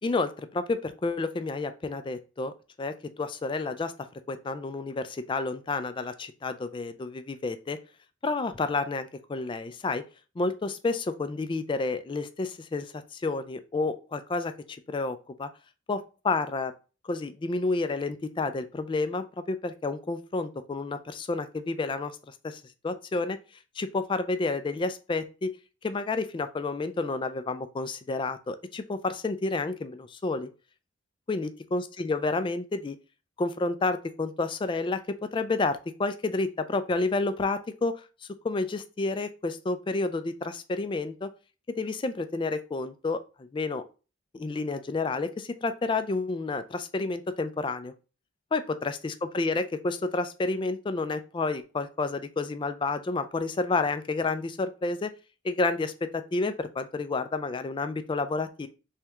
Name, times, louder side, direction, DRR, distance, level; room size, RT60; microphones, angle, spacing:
voice 1, 0.0-2.5 2.8-3.9 4.3-7.8 8.2-10.0 10.4-15.5 15.9-16.7 17.0-23.4 23.8-25.5 25.8-30.5 31.3-33.0 33.4-38.0 38.4-41.3 41.7-43.8 44.3-47.9 48.5-55.1 55.4-58.7, left 3 dB, 25° left, 10 dB, 0.3 m, -30 dB
3.3 x 3.0 x 3.5 m, 0.33 s
head